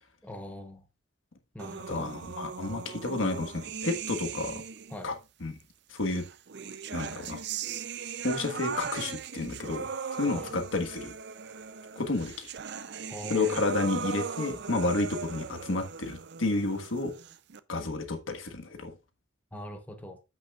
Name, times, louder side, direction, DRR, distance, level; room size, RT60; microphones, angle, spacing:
voice 1, 0.2-0.9 1.5-2.1 4.9-5.1 10.3-10.6 13.1-13.7 19.5-20.2, equal, 10° left, 1.0 m, -42 dB
sound 1, 1.6-5.1 6.1-17.6, right 6 dB, 55° right, 0.5 m, -39 dB
voice 2, 1.9-4.6 5.0-5.1 5.4-5.5 5.9-6.2 6.9-7.4 8.2-11.1 11.9-12.5 13.3-17.1 17.7-18.9, left 2 dB, 80° left, 1.5 m, -31 dB
14.0 x 6.1 x 2.4 m
head